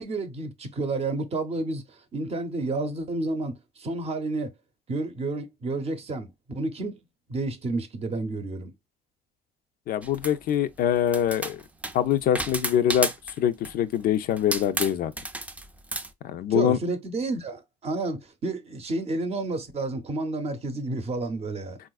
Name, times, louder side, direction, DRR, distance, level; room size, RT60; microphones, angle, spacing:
voice 1, 0.0-4.5 4.9-7.0 7.3-8.7 16.5-21.8, right 2 dB, 35° right, 0.7 m, -30 dB
voice 2, 9.9-11.6 11.9-13.1 13.4-15.1 16.2-16.8, left 10 dB, 60° left, 0.4 m, -24 dB
sound 1, 10.0-10.5 11.1-13.4 13.6-13.9 14.4-16.1, right 2 dB, 10° right, 0.4 m, -32 dB
3.9 x 2.5 x 2.3 m
cardioid pair, 110°, 17 cm